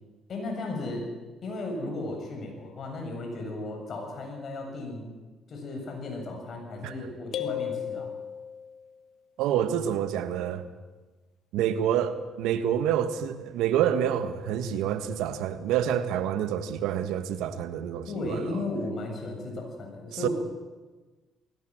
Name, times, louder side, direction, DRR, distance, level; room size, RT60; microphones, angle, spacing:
voice 1, 0.3-1.1 1.4-5.1 5.5-8.1 18.1-20.3, left 2 dB, 50° left, 2 dB, 7.9 m, -35 dB
sound 1, 7.3-8.9, left 10 dB, 70° left, 1.5 m, -34 dB
voice 2, 9.4-10.6 11.5-18.6 20.2-20.3, right 9 dB, 80° right, 11 dB, 1.5 m, -27 dB
20.5 x 18.0 x 7.7 m, 1.3 s
supercardioid pair, 75°, 0 cm